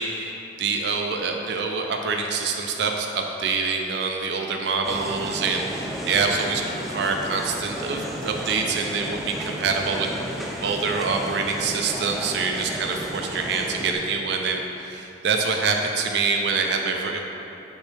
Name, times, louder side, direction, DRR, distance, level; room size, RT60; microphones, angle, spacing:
voice 1, 0.0-17.2, right 4 dB, 65° right, 2 dB, 0.4 m, -26 dB
sound 1, 4.8-13.9, equal, ahead, 0.4 m, -33 dB
6.0 x 5.5 x 3.3 m, 3.0 s
head